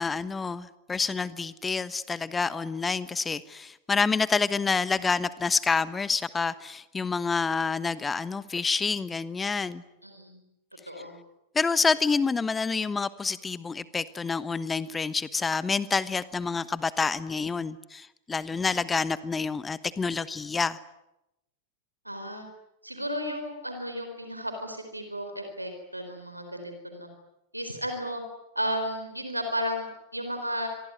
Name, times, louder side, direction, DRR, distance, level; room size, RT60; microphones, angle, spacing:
voice 1, 0.0-9.8 11.5-20.8, left 4 dB, 15° left, 17 dB, 1.1 m, -28 dB
voice 2, 10.0-10.4 10.9-11.2 22.0-22.4 22.8-27.1 27.5-28.2 28.5-30.7, equal, 85° right, 6 dB, 4.3 m, -33 dB
27.0 x 23.0 x 9.6 m, 0.90 s
figure-of-eight pair, 90°, 0 cm